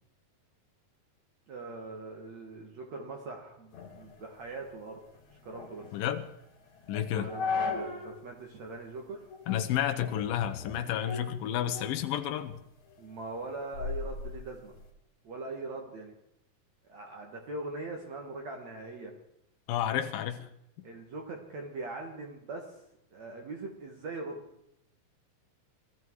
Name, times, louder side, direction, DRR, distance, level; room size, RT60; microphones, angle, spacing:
voice 1, 1.5-5.0 5.3-5.8 7.1-9.2 13.0-14.7 15.2-16.1 16.9-19.1 20.8-22.8 23.1-24.4, right 3 dB, 50° right, 1 dB, 2.7 m, -41 dB
sound 1, 3.7-8.2 8.6-8.7 9.3-9.7 10.0-12.1 12.5-14.9, left 4 dB, 50° left, 3.7 m, -38 dB
voice 2, 5.9-6.3 6.9-7.3 9.5-12.5 19.7-20.5, left 10 dB, 70° left, 7 dB, 2.7 m, -31 dB
21.0 x 14.0 x 4.8 m, 0.80 s
omnidirectional pair, 4.3 m